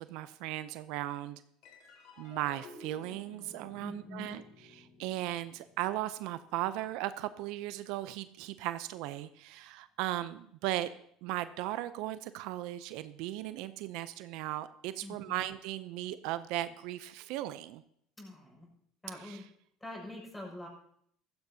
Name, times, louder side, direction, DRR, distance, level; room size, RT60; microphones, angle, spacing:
voice 1, 0.0-1.4 2.2-10.9 11.2-17.8 19.2-19.4, right 15 dB, 75° right, 13 dB, 0.5 m, -37 dB
sound 1, 1.6-8.3, left 3 dB, 70° left, 4.3 m, -55 dB
voice 2, 3.8-4.4 15.0-15.4 18.2-18.7 19.0-19.4 19.8-20.7, left 1 dB, 10° left, -2 dB, 5.9 m, -45 dB
15.0 x 14.5 x 2.8 m, 0.67 s
supercardioid pair, 95°, 0 cm